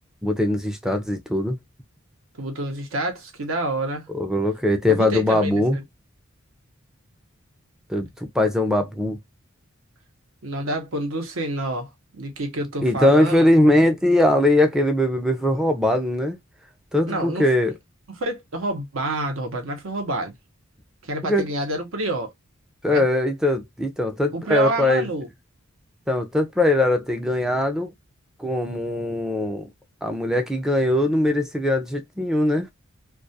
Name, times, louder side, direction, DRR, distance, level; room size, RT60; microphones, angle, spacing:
voice 1, 0.2-1.6 4.1-5.8 7.9-8.1 8.3-9.2 12.8-16.4 16.9-17.7 21.2-21.5 22.8-25.1 26.1-27.9 28.4-29.7 30.0-32.7, left 1 dB, 5° right, 0.4 m, -21 dB
voice 2, 2.4-4.1 4.9-5.8 10.4-13.4 17.1-17.5 18.1-20.3 21.0-22.3 22.9-23.0 24.3-25.3, right 2 dB, 70° right, 0.8 m, -28 dB
2.3 x 2.2 x 2.6 m
head